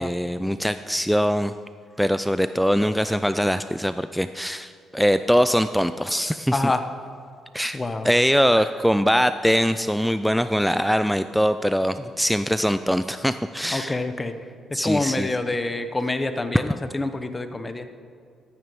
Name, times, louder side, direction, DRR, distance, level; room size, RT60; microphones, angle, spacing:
voice 1, 0.0-1.5 2.0-6.7 7.5-7.8 8.0-14.0 14.7-15.4 16.5-16.6, equal, ahead, 11 dB, 0.3 m, -22 dB
voice 2, 6.5-6.8 7.7-8.1 13.7-14.3 14.7-17.9, left 2 dB, 20° left, 9 dB, 0.8 m, -26 dB
13.0 x 9.0 x 5.4 m, 2.2 s
cardioid pair, 90°, 0 cm